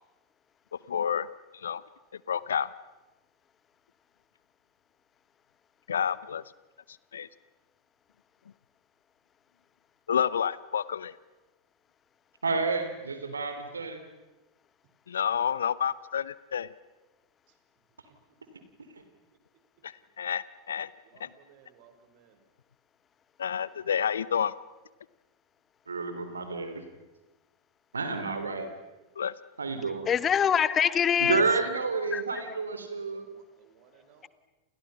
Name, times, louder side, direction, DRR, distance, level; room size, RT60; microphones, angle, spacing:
voice 1, 0.9-1.3 1.6-1.8 2.3-2.7 5.9-6.4 7.1-7.3 10.1-11.1 15.1-16.7 19.8-20.9 21.2-21.3 23.4-24.5 29.2-29.3, left 8 dB, 65° left, 19 dB, 0.9 m, -29 dB
voice 2, 12.4-14.0 25.9-26.8 27.9-28.7 29.6-30.1 31.2-33.2, right 4 dB, 75° right, 8 dB, 3.8 m, -30 dB
voice 3, 21.0-22.4 33.1-34.3, right 7 dB, 45° right, 7 dB, 5.1 m, -60 dB
voice 4, 30.1-31.4 32.1-32.4, left 8 dB, 25° left, 17 dB, 0.9 m, -24 dB
29.5 x 29.5 x 5.9 m, 1.1 s
figure-of-eight pair, 90°, 0 cm